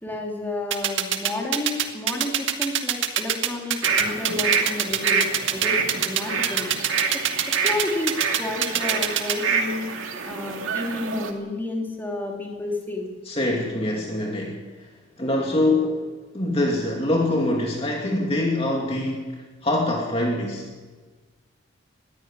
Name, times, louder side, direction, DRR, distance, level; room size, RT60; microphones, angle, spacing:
voice 1, 0.0-6.7 7.6-9.9 10.2-13.1, left 2 dB, 10° left, -1 dB, 3.1 m, -31 dB
sound 1, 0.7-9.3, right 10 dB, 70° right, 1.7 m, -23 dB
sound 2, 3.8-11.3, right 5 dB, 90° right, 2.3 m, -27 dB
voice 2, 13.3-14.6 15.2-16.0 16.3-20.7, left 1 dB, 30° left, 0 dB, 2.5 m, -24 dB
21.0 x 14.5 x 8.9 m, 1.3 s
head